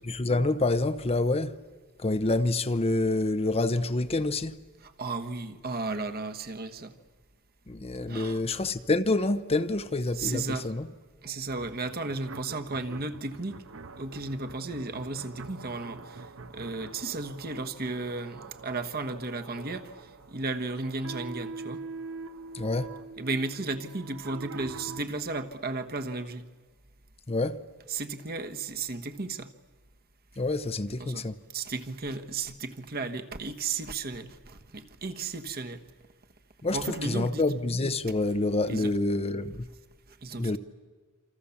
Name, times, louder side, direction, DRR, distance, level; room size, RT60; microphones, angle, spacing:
voice 1, 0.0-1.6 2.0-4.6 7.7-10.9 22.5-22.9 27.3-27.6 30.4-31.4 36.6-39.7 40.3-40.6, left 2 dB, 30° left, 0.7 m, -27 dB
voice 2, 4.8-6.9 8.1-8.4 10.1-10.7 11.2-13.6 14.0-21.8 23.2-26.5 27.9-29.5 31.0-31.3 31.5-35.8 36.7-37.4 38.7-38.9 40.2-40.6, right 3 dB, 45° right, 1.3 m, -34 dB
sound 1, 11.6-25.0, right 4 dB, 65° right, 1.0 m, -44 dB
28.0 x 26.0 x 7.2 m
head